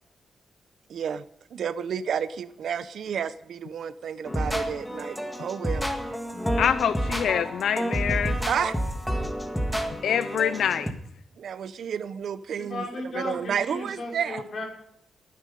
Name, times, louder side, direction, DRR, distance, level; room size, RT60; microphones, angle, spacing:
voice 1, 0.9-1.2 1.5-5.8 8.5-8.8 11.4-12.9 13.1-14.4, right 7 dB, 70° right, 14 dB, 0.8 m, -31 dB
sound 1, 4.2-10.9, equal, ahead, 1.9 m, -29 dB
voice 2, 6.6-8.4 10.0-10.9, left 8 dB, 80° left, 14 dB, 0.5 m, -25 dB
voice 3, 12.6-14.6, left 2 dB, 50° left, 0 dB, 5.7 m, -35 dB
19.5 x 10.5 x 5.4 m, 0.74 s
wide cardioid pair, 145°, 0 cm